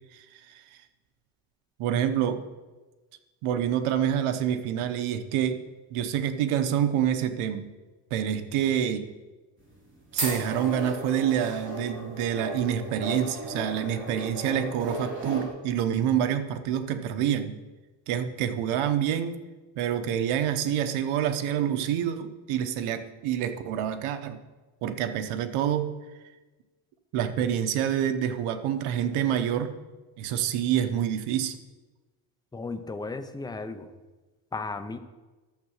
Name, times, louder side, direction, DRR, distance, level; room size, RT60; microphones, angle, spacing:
voice 1, 0.1-0.6 1.8-2.4 3.4-5.6 5.9-7.7 8.1-9.1 10.1-17.6 18.1-19.4 19.8-24.4 24.8-25.9 27.1-29.8 30.2-31.6, right 9 dB, 85° right, 9 dB, 1.1 m, -27 dB
sound 1, 9.6-15.5, right 1 dB, 25° right, 3.5 m, -35 dB
voice 2, 32.5-33.9 34.5-35.0, left 3 dB, 10° left, 8 dB, 0.6 m, -35 dB
11.0 x 7.5 x 6.4 m, 1.2 s
cardioid pair, 135°, 49 cm